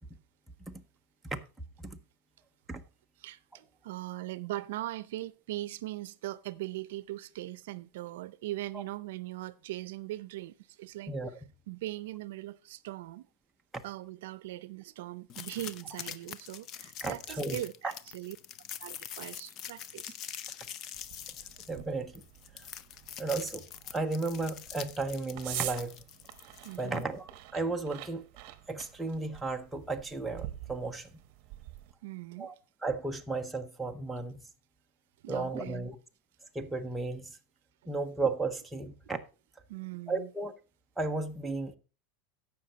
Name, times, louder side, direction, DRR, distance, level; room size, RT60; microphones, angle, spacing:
voice 1, 3.2-11.1 11.7-13.3 13.8-18.4 18.8-20.2 26.6-27.0 32.0-32.5 35.2-35.9 39.7-40.3, right 16 dB, 75° right, 0.6 m, -40 dB
sound 1, 15.3-27.0, left 9 dB, 35° left, 0.5 m, -44 dB
voice 2, 17.0-17.6 21.7-22.2 23.2-25.9 26.8-28.2 28.7-31.1 32.4-32.5 32.8-34.4 35.3-36.0 36.5-37.4 37.9-39.2 40.1-40.5 41.0-41.8, right 3 dB, 5° right, 0.7 m, -34 dB
sound 2, 20.9-31.9, right 15 dB, 45° right, 1.0 m, -46 dB
15.5 x 5.8 x 4.1 m
supercardioid pair, 165°, 0 cm